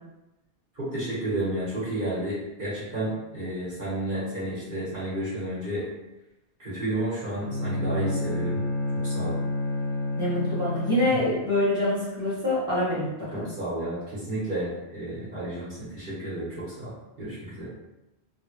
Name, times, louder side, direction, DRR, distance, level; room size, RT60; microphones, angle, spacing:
voice 1, 0.7-5.9 6.6-8.6 9.0-9.3 13.3-16.9 17.2-17.7, right 1 dB, 45° right, -11 dB, 1.3 m, -31 dB
Bowed string instrument, 7.3-11.4, left 1 dB, 85° left, 1.2 m, -29 dB
voice 2, 10.2-13.5, left 1 dB, 5° right, -11 dB, 1.3 m, -25 dB
3.2 x 2.3 x 3.0 m, 0.98 s
omnidirectional pair, 1.2 m